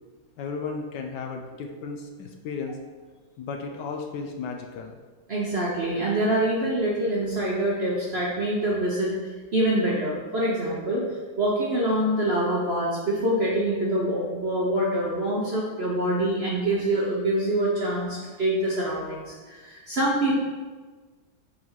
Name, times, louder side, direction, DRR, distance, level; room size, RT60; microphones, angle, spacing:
voice 1, 0.4-2.8 3.4-5.0, left 4 dB, 70° left, 4 dB, 1.1 m, -34 dB
voice 2, 5.3-11.0 11.4-20.3, right 1 dB, 50° right, -5 dB, 0.8 m, -25 dB
4.6 x 4.5 x 5.5 m, 1.4 s
omnidirectional pair, 2.1 m